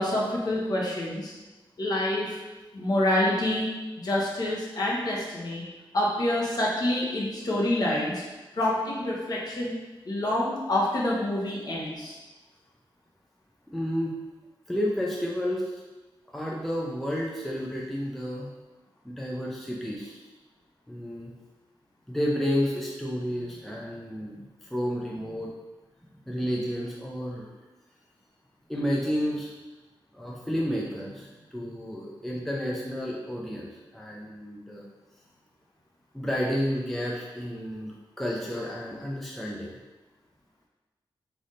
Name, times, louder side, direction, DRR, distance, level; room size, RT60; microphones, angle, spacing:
voice 1, 0.0-1.3 1.8-2.4 2.7-3.7 4.0-5.6 5.9-8.2 8.5-9.8 10.0-12.2, left 1 dB, 45° left, -4 dB, 1.1 m, -27 dB
voice 2, 13.7-14.2 14.7-15.7 16.3-18.5 19.0-20.2 20.9-21.3 22.1-25.5 26.3-27.5 28.7-29.5 30.1-34.8 36.1-39.8, equal, ahead, -3 dB, 0.5 m, -31 dB
3.7 x 3.4 x 4.1 m, 1.2 s
wide cardioid pair, 165°, 9 cm